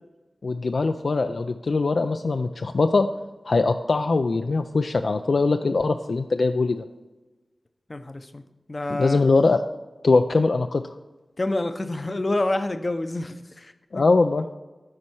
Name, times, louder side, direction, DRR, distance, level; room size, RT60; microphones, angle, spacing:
voice 1, 0.4-3.1 3.5-6.8 8.9-9.6 10.0-10.8 13.9-14.4, left 3 dB, 70° left, 7 dB, 0.4 m, -22 dB
voice 2, 7.9-8.4 8.7-9.2 11.4-14.0, left 2 dB, 40° left, 9 dB, 0.7 m, -28 dB
9.6 x 4.3 x 6.3 m, 1.1 s
wide cardioid pair, 55°, 0 cm